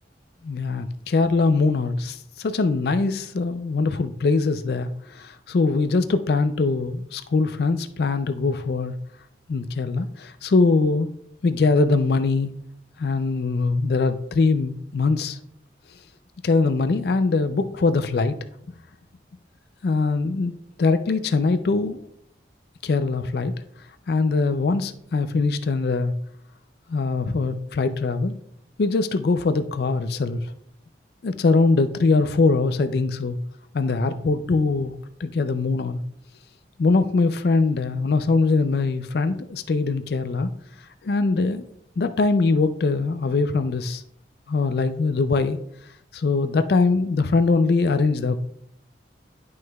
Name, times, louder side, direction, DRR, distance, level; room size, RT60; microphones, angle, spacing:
voice 1, 0.4-8.9 9.5-11.1 11.4-12.5 13.0-15.4 16.4-18.4 19.8-22.1 22.8-23.5 24.1-26.1 26.9-28.4 28.8-30.5 31.2-33.4 33.7-36.0 36.8-40.5 41.0-41.7 42.0-44.0 44.5-45.6 46.1-48.4, left 3 dB, 60° left, 10 dB, 0.4 m, -22 dB
10.5 x 6.3 x 2.3 m, 0.72 s
head